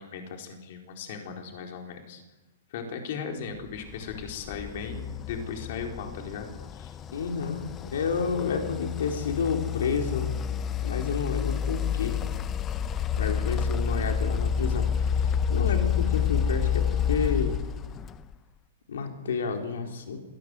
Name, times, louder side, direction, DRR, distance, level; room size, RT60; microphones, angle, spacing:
voice 1, 0.0-2.2 2.7-6.9 13.2-13.5, left 6 dB, 55° left, 3 dB, 4.3 m, -37 dB
sound 1, 3.9-18.3, left 7 dB, 20° left, 0.8 m, -29 dB
voice 2, 7.1-10.3 10.8-12.2 13.2-17.6 18.9-20.2, left 5 dB, 85° left, 4 dB, 3.5 m, -30 dB
26.5 x 18.0 x 8.1 m, 1.1 s
hypercardioid pair, 155°, 0 cm